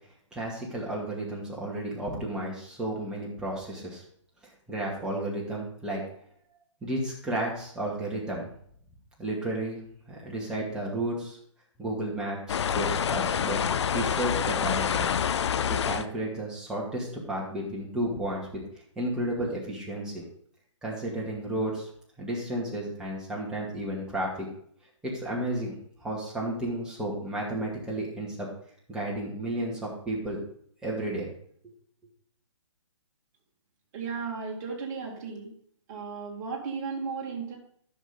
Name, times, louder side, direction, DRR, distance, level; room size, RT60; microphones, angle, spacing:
voice 1, 0.3-4.0 4.7-6.0 6.8-8.4 9.2-9.8 10.1-11.4 11.8-13.6 13.9-15.1 15.7-18.6 19.0-20.2 20.8-21.9 22.2-24.5 25.0-25.7 26.0-28.5 28.9-30.4 30.8-31.3, right 1 dB, 5° right, -5 dB, 2.3 m, -32 dB
sound 1, 12.5-16.0, left 7 dB, 60° left, 0.5 m, -27 dB
voice 2, 33.9-35.5 35.9-37.6, right 5 dB, 35° right, 0 dB, 2.4 m, -35 dB
11.0 x 6.5 x 3.8 m, 0.64 s
hypercardioid pair, 140°, 16 cm